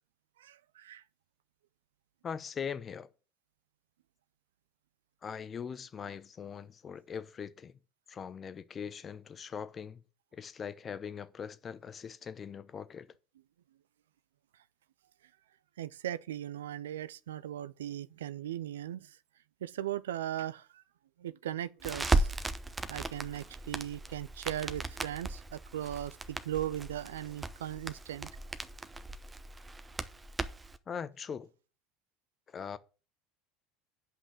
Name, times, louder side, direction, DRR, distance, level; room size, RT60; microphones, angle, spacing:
voice 1, 0.4-1.0 15.8-19.2 19.6-20.8 21.2-22.3 22.9-28.3, right 12 dB, 75° right, 0.4 m, -38 dB
voice 2, 2.2-3.1 5.2-7.8 8.1-10.0 10.3-13.1 30.9-31.5 32.5-32.8, left 7 dB, 30° left, 0.8 m, -41 dB
Crackle, 21.8-30.8, right 2 dB, 15° right, 0.8 m, -36 dB
8.6 x 5.6 x 7.3 m
hypercardioid pair, 75°, 0 cm